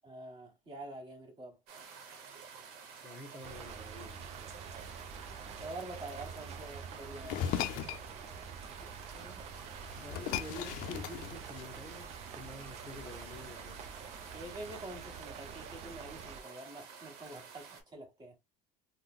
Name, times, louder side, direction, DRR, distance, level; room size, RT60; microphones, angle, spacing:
voice 1, 0.0-1.6 5.6-7.4 14.3-18.3, right 1 dB, 30° right, 1.4 m, -46 dB
sound 1, 1.7-17.8, right 5 dB, 75° right, 0.9 m, -51 dB
voice 2, 3.0-4.4 9.0-9.4 10.0-12.1 12.4-13.8, left 1 dB, 5° left, 0.8 m, -48 dB
sound 2, 3.4-16.4, right 6 dB, 45° right, 0.5 m, -47 dB
sound 3, 7.2-8.1 9.4-9.5 9.8-11.9, left 10 dB, 70° left, 0.4 m, -37 dB
3.7 x 2.1 x 2.2 m
supercardioid pair, 110°, 15 cm